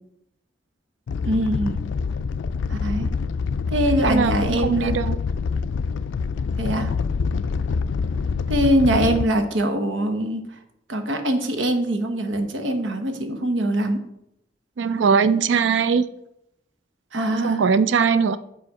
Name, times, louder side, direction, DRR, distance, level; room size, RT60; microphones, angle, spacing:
Animal, 1.1-9.2, left 5 dB, 80° left, 0.3 m, -26 dB
voice 1, 1.2-1.8 2.7-3.1 3.7-4.9 6.6-6.9 8.5-10.4 10.9-14.0 17.1-17.6, right 1 dB, 90° right, 6 dB, 1.1 m, -23 dB
voice 2, 4.0-4.3 4.6-5.2 14.8-16.0 17.4-18.4, right 5 dB, 70° right, 14 dB, 0.4 m, -20 dB
7.7 x 5.0 x 4.8 m, 0.80 s
head